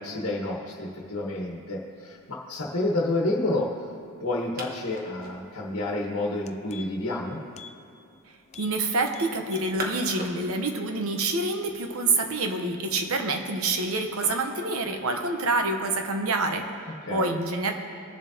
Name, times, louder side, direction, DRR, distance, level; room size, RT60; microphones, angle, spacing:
voice 1, 0.0-3.7 4.2-7.4 17.0-17.3, left 2 dB, 65° left, -2 dB, 1.3 m, -29 dB
sound 1, 0.9-16.3, right 1 dB, 40° right, 1.2 m, -46 dB
sound 2, 5.8-6.0 6.3-7.1 7.5-7.8 8.1-8.2 8.5-8.8 9.1-9.8 10.2-10.3, left 6 dB, 30° left, 0.3 m, -46 dB
voice 2, 8.6-17.7, right 2 dB, 70° right, 5 dB, 0.9 m, -27 dB
21.5 x 7.3 x 2.8 m, 2.5 s
head